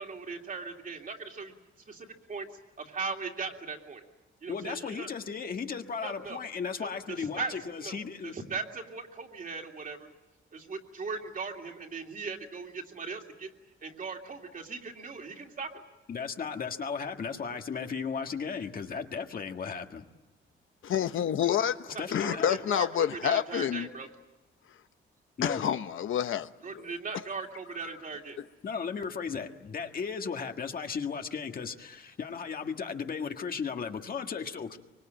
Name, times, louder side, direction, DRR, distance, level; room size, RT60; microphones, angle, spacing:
voice 1, 0.0-1.5 1.9-2.5 2.8-4.0 4.4-5.1 6.0-6.4 6.8-7.5 7.8-8.0 8.2-10.1 10.5-13.5 13.8-15.7 21.9-24.1 26.6-28.4, right 4 dB, 40° right, 2.8 m, -38 dB
voice 2, 4.5-8.4 16.1-20.0 22.0-22.5 25.4-25.6 28.6-34.8, left 6 dB, 45° left, 1.7 m, -35 dB
voice 3, 20.8-23.9 25.4-26.5 26.7-26.8 27.8-27.9, left 9 dB, 75° left, 0.9 m, -28 dB
25.0 x 24.0 x 8.9 m
wide cardioid pair, 160°, 21 cm